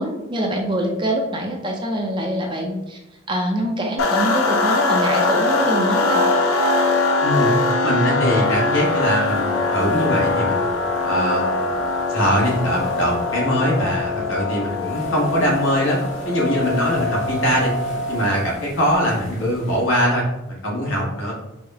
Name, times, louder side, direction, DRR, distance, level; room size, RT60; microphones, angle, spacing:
voice 1, 0.0-3.0 3.3-6.2, right 1 dB, 25° right, 1 dB, 0.4 m, -24 dB
sound 1, 4.0-18.5, left 3 dB, 85° left, 0.5 m, -22 dB
voice 2, 7.8-10.7 11.0-11.8 12.1-17.7 18.1-21.3, equal, 70° left, -3 dB, 1.2 m, -22 dB
sound 2, 8.3-19.9, left 1 dB, 35° left, 0.8 m, -42 dB
4.8 x 2.1 x 3.5 m, 0.95 s
head